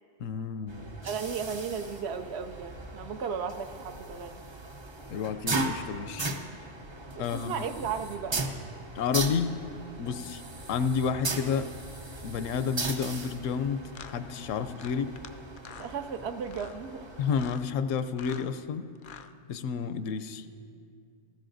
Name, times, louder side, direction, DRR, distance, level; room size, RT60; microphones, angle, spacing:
voice 1, 0.2-0.9 5.1-6.3 7.2-7.6 9.0-9.5 10.0-10.4 10.7-11.7 12.2-15.1 17.2-18.9 19.5-20.5, left 6 dB, 80° left, 10 dB, 0.9 m, -30 dB
sound 1, 0.7-17.5, right 2 dB, 30° right, 0.5 m, -38 dB
voice 2, 1.0-4.4 7.2-8.4 15.8-17.1, right 6 dB, 65° right, 9 dB, 0.8 m, -35 dB
sound 2, 13.2-13.4 13.9-14.1 14.8-15.3 15.6-15.9 16.4-16.8 17.3-17.7 18.1-18.5 19.0-19.3, left 7 dB, 60° left, 0.5 m, -46 dB
17.5 x 14.5 x 2.6 m, 2.4 s
omnidirectional pair, 1.3 m